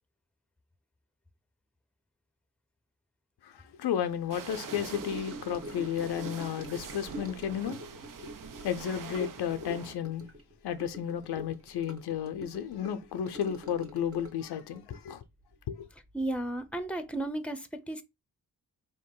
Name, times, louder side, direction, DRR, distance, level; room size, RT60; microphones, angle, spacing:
voice 1, 3.4-7.8 8.6-10.3 10.6-15.2 15.7-15.9, left 9 dB, 80° left, 0.5 m, -33 dB
sound 1, 4.3-10.0, right 7 dB, 55° right, 0.6 m, -45 dB
Gurgling / Sink (filling or washing) / Trickle dribble, 4.7-16.3 16.6-16.9 17.2-17.3, right 1 dB, 35° right, 1.1 m, -45 dB
voice 2, 16.1-18.0, right 1 dB, 5° left, 0.7 m, -34 dB
3.9 x 2.8 x 3.7 m
supercardioid pair, 40°, 39 cm